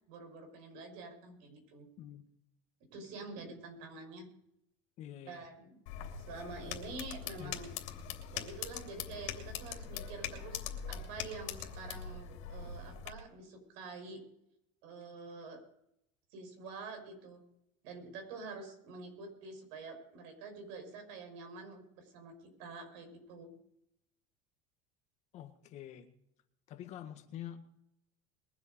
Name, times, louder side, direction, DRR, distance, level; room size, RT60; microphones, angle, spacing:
voice 1, 0.1-1.9 2.9-4.3 5.3-5.8 6.2-7.7 8.3-14.2 14.8-15.6 16.3-17.4 17.8-23.6, right 3 dB, 75° right, 5 dB, 5.9 m, -47 dB
voice 2, 5.0-5.4 7.4-7.6 25.3-26.1 26.7-27.6, left 11 dB, 45° left, 7 dB, 1.7 m, -46 dB
sound 1, 5.9-13.1, left 8 dB, 80° left, 3.0 m, -42 dB
22.0 x 8.2 x 5.2 m, 0.77 s
cardioid pair, 145°, 16 cm